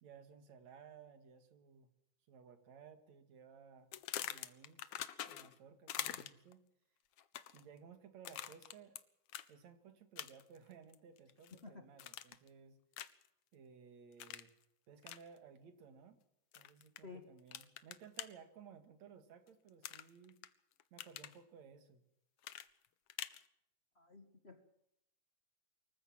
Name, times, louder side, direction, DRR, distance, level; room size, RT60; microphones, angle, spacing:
voice 1, 0.0-1.9 2.3-3.9 4.2-4.9 5.3-6.6 7.5-9.0 9.5-12.8 13.5-14.5 14.9-16.2 16.5-20.4 20.9-22.0, right 6 dB, 65° right, 9 dB, 3.3 m, -58 dB
sound 1, 3.9-5.6 5.9-6.5 7.2-7.6 8.2-9.0 9.3-9.5 10.2-10.6 10.9-11.6 12.0-12.5 12.9-13.3 14.2-14.5 15.0-15.2 16.5-17.0 17.5-18.3 19.8-20.5 20.8-21.4 22.4-23.4, left 11 dB, 65° left, 1.6 m, -45 dB
voice 2, 23.9-24.7, left 4 dB, 30° left, 7 dB, 1.2 m, -53 dB
25.0 x 14.5 x 7.6 m, 0.81 s
omnidirectional pair, 3.5 m